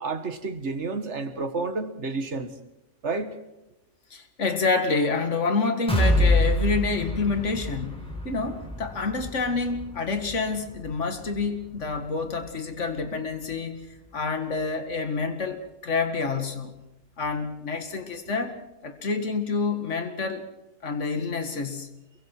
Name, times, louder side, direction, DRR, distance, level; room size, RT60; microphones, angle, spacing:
voice 1, 0.0-2.5 3.0-3.3, right 3 dB, 65° right, 2.0 m, -30 dB
voice 2, 4.1-13.9 14.1-16.7 17.2-18.5 18.8-20.5 20.8-21.9, left 4 dB, 75° left, 2.3 m, -28 dB
sound 1, 5.9-13.7 14.1-14.2 14.6-14.7, left 1 dB, 5° left, 3.9 m, -28 dB
28.5 x 23.0 x 4.7 m
omnidirectional pair, 1.3 m